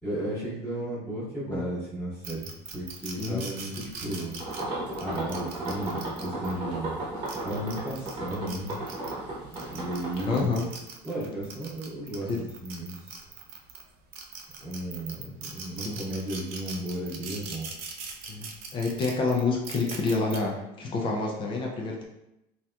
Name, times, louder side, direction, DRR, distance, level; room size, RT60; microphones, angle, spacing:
voice 1, 0.0-4.4 5.0-7.0 7.4-8.8 9.5-10.6 11.0-12.3 12.6-13.1 14.6-17.7, right 1 dB, 5° left, -15 dB, 1.1 m, -34 dB
sound 1, 2.2-6.5 7.1-9.1 9.5-13.8 14.1-20.4, right 5 dB, 60° right, 0.5 m, -41 dB
sound 2, 4.4-10.4, right 2 dB, 25° right, 0.9 m, -34 dB
voice 2, 10.3-10.7 12.3-12.4 15.8-16.0 18.3-22.0, left 3 dB, 30° left, 0 dB, 0.4 m, -28 dB
3.6 x 2.8 x 2.2 m, 0.86 s
cardioid pair, 180°, 18 cm